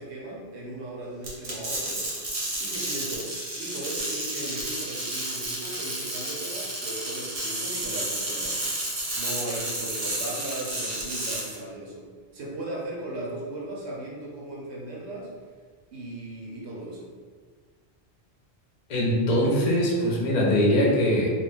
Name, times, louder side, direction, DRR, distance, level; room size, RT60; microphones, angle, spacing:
voice 1, 0.0-2.0 2.6-8.6 9.1-12.1 12.3-15.3 15.9-17.1, right 1 dB, 75° right, -3 dB, 0.9 m, -37 dB
sound 1, 1.2-11.5, right 1 dB, 40° right, 0.6 m, -31 dB
voice 2, 18.9-21.3, equal, 50° left, -3 dB, 0.5 m, -22 dB
2.3 x 2.1 x 3.2 m, 1.5 s
omnidirectional pair, 1.1 m